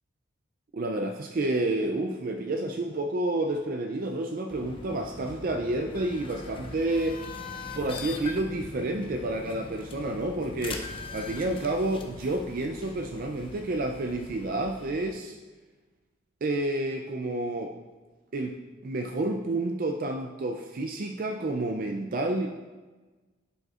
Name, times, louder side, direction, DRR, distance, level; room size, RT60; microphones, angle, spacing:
voice 1, 0.7-7.2 7.7-10.8 11.1-15.4 16.4-17.7 18.3-18.6 18.8-22.7, right 2 dB, 45° right, 3 dB, 0.4 m, -30 dB
sound 1, 4.5-15.1, left 2 dB, 30° left, 0.6 m, -41 dB
11.5 x 5.3 x 2.4 m, 1.3 s
head